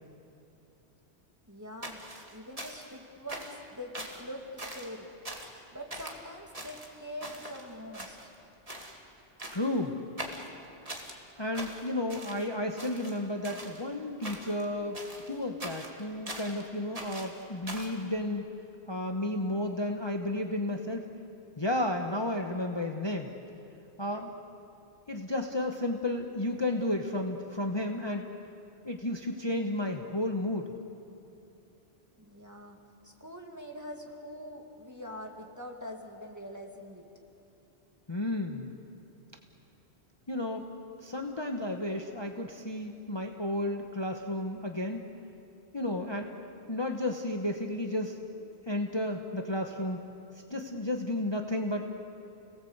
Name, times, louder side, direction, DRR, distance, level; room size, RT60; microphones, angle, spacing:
voice 1, 1.5-2.0 2.3-3.9 4.2-5.1 5.7-8.3 32.2-37.1, equal, 15° right, 1 dB, 2.4 m, -44 dB
sound 1, 1.8-3.0 3.3-3.6 3.9-4.2 4.6-5.0 5.3-5.6 5.9-6.2 6.5-7.6 7.9-8.4 8.7-9.0 9.4-9.8 10.2-11.2 11.5-12.5 12.8-13.8 14.2-14.6 14.9-16.6 16.9-18.0, right 1 dB, 30° right, 2.5 m, -42 dB
voice 2, 9.5-9.9 11.4-18.5 18.9-21.1 21.6-23.3 24.0-24.3 25.1-28.3 28.8-30.7 38.1-38.7 40.3-40.6 41.0-45.0 45.7-46.3 46.7-50.0 50.3-51.9, left 1 dB, 25° left, 3 dB, 1.2 m, -32 dB
30.0 x 18.5 x 8.1 m, 2.8 s
omnidirectional pair, 1.1 m